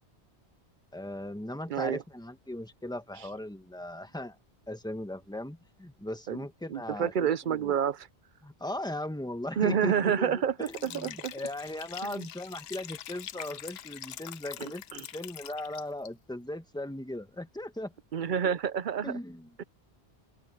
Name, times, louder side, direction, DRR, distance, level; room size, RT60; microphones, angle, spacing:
voice 1, 0.9-4.4 4.7-7.7 8.4-17.9 19.0-19.5, left 1 dB, 5° left, 1.4 m, -38 dB
voice 2, 1.7-2.0 6.3-6.4 6.7-8.1 9.6-11.3 12.0-12.3 14.6-15.1 18.1-19.1 19.6-19.7, right 8 dB, 55° right, 0.7 m, -29 dB
Liquid, 10.6-16.1, left 12 dB, 70° left, 0.8 m, -44 dB
omnidirectional pair, 1.1 m